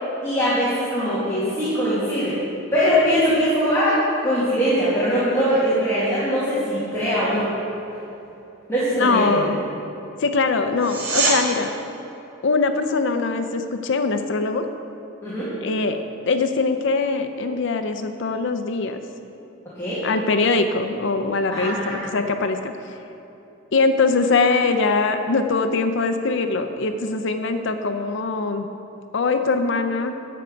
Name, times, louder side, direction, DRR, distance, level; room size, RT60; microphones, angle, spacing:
voice 1, 0.2-2.3 2.7-7.5 8.7-9.4 15.2-15.5 19.8-20.0 21.5-21.9, equal, 15° left, -11 dB, 2.0 m, -21 dB
voice 2, 9.0-9.6 10.2-11.7 12.4-14.7 15.6-19.0 20.0-22.9 23.7-28.7 29.1-30.1, left 3 dB, 60° left, 8 dB, 0.5 m, -22 dB
sound 1, 10.8-11.4 22.7-22.8, right 3 dB, 80° right, 2.0 m, -22 dB
10.0 x 7.8 x 5.1 m, 3.0 s
head